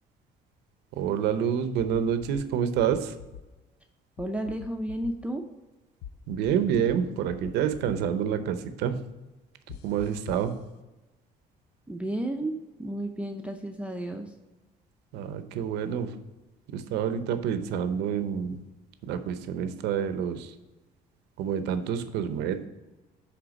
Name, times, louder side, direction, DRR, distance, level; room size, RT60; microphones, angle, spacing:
voice 1, 1.0-3.1 6.3-9.0 9.8-10.5 15.1-16.1 16.7-18.6 19.1-20.5 21.4-22.7, right 8 dB, 85° right, 10 dB, 0.7 m, -28 dB
sound 1, 1.8-2.4 2.8-3.4 4.2-5.1 6.0-7.0 7.3-7.9 9.7-10.5, left 9 dB, 75° left, 0.4 m, -43 dB
voice 2, 4.2-5.4 11.9-14.3, right 1 dB, 5° right, 3 dB, 0.5 m, -32 dB
7.9 x 3.4 x 5.1 m, 1.1 s
cardioid pair, 110°, 17 cm